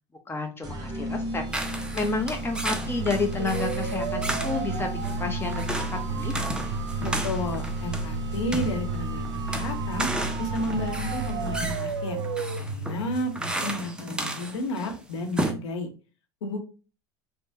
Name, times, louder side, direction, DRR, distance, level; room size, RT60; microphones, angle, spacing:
voice 1, 0.3-1.4 1.7-5.6 5.9-6.4, left 4 dB, 15° left, 4 dB, 0.8 m, -30 dB
sound 1, 0.6-12.0, right 2 dB, 25° right, 1.1 m, -34 dB
sound 2, 1.5-14.9 15.2-15.5, right 1 dB, 5° right, 0.4 m, -34 dB
sound 3, 2.4-14.2, right 3 dB, 90° right, 0.5 m, -33 dB
voice 2, 7.0-10.1 10.4-12.2 12.6-15.9 16.4-16.6, left 1 dB, 85° left, 4 dB, 0.9 m, -32 dB
3.3 x 2.2 x 2.8 m, 0.33 s
hypercardioid pair, 100°, 14 cm